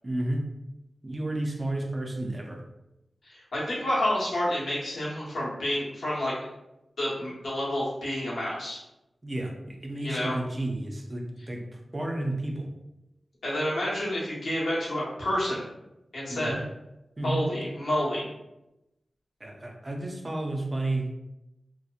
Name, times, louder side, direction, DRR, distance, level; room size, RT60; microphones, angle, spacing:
voice 1, 0.0-0.5 1.0-2.6 9.2-12.7 16.3-16.6 17.2-17.4 19.4-21.1, right 1 dB, 25° right, 0 dB, 0.4 m, -32 dB
voice 2, 3.2-6.3 7.0-8.8 10.0-10.4 13.4-15.6 16.1-16.5 17.2-18.3, left 1 dB, 85° left, -7 dB, 1.0 m, -29 dB
2.7 x 2.0 x 2.4 m, 0.92 s
wide cardioid pair, 115°, 0 cm